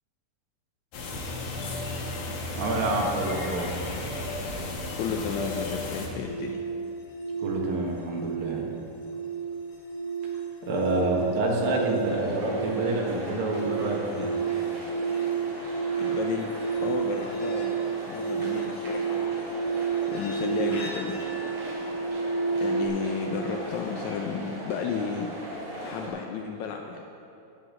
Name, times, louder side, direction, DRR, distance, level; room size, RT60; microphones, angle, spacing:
sound 1, 0.9-6.1, left 2 dB, 70° left, 2.8 m, -33 dB
voice 1, 2.5-3.7 7.4-8.7 10.6-14.3, right 2 dB, 75° right, -1 dB, 3.3 m, -28 dB
voice 2, 5.0-6.6 15.5-15.7 16.0-19.8 20.1-21.2 22.6-25.3 25.8-27.0, left 6 dB, 85° left, 2 dB, 1.6 m, -33 dB
sound 2, 6.2-22.9, right 6 dB, 55° left, 2.9 m, -31 dB
sound 3, 12.0-26.1, right 1 dB, 55° right, 4.4 m, -39 dB
15.5 x 5.3 x 7.5 m, 2.7 s
omnidirectional pair, 4.1 m